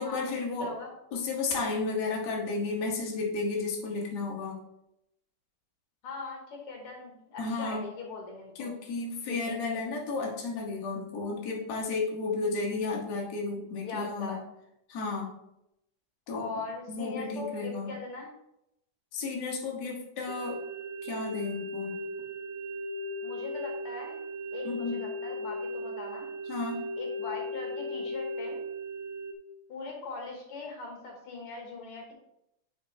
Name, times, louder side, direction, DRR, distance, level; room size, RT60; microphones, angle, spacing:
voice 1, 0.0-0.7 1.1-4.6 7.4-7.8 8.6-14.4 14.9-15.3 16.3-16.5 16.9-17.9 19.1-20.6 21.0-22.0 24.6-24.9 26.5-26.8, left 3 dB, 80° left, -1 dB, 0.9 m, -33 dB
voice 2, 0.6-0.9 6.0-8.7 9.3-9.6 13.8-14.4 16.3-18.3 23.2-24.2 24.5-26.3 27.0-28.6 29.7-32.1, left 4 dB, 60° left, 1 dB, 1.6 m, -40 dB
sound 1, 20.3-29.3, left 1 dB, 75° right, 1.7 m, -37 dB
8.8 x 4.6 x 3.1 m, 0.81 s
omnidirectional pair, 3.8 m